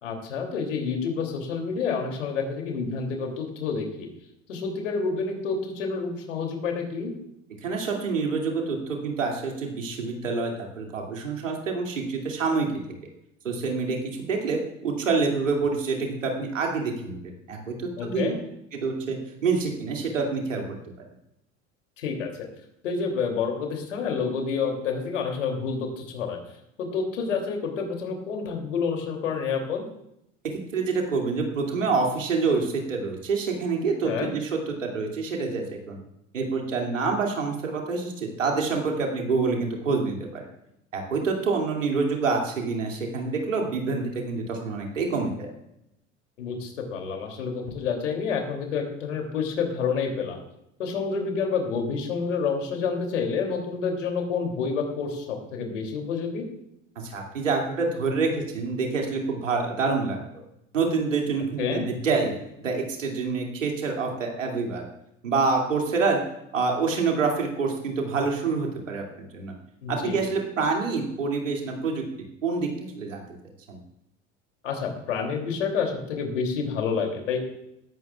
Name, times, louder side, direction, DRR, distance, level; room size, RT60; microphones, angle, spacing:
voice 1, 0.0-4.1 4.5-7.1 18.0-18.3 22.0-22.5 22.8-26.4 26.8-29.8 34.0-34.3 46.4-50.4 50.8-56.4 61.6-61.8 69.8-70.2 74.6-77.5, left 5 dB, 75° left, 2 dB, 3.0 m, -28 dB
voice 2, 7.6-12.7 13.4-17.7 18.0-18.3 18.7-20.7 30.7-36.0 36.3-40.5 40.9-45.5 57.0-60.2 60.7-62.3 62.6-64.8 65.2-66.2 66.5-69.5 69.9-72.0 72.4-73.2 73.7-73.8, right 4 dB, 85° right, 1 dB, 2.7 m, -27 dB
18.5 x 15.0 x 2.4 m, 0.82 s
figure-of-eight pair, 70°, 37 cm